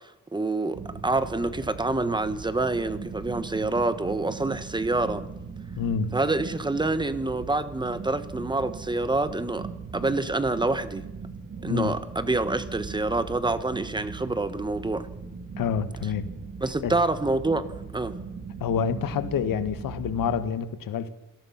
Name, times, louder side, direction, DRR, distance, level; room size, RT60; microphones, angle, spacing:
voice 1, 0.3-5.2 6.1-11.0 11.6-15.1 16.6-17.7 17.9-18.1, right 2 dB, 15° right, 1.2 m, -27 dB
sound 1, 0.7-20.5, right 5 dB, 45° right, 3.0 m, -39 dB
voice 2, 5.8-6.2 11.7-12.0 15.6-16.3 16.8-17.0 18.6-21.1, left 7 dB, 85° left, 1.7 m, -27 dB
27.0 x 18.0 x 5.9 m
wide cardioid pair, 160°, 33 cm